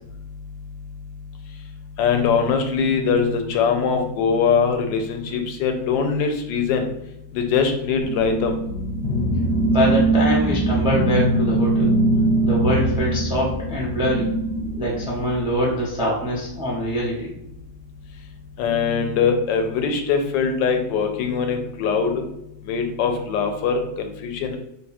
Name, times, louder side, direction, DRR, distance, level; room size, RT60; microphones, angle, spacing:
voice 1, 2.0-6.9 7.3-8.6 18.6-22.2 22.6-24.6, left 5 dB, 80° left, 5 dB, 1.2 m, -22 dB
sound 1, 8.0-15.8, right 2 dB, 55° left, 1.2 m, -22 dB
voice 2, 9.7-11.9 12.4-14.3 14.8-17.3, equal, 10° right, -5 dB, 0.3 m, -24 dB
3.1 x 2.3 x 4.1 m, 0.81 s
omnidirectional pair, 2.0 m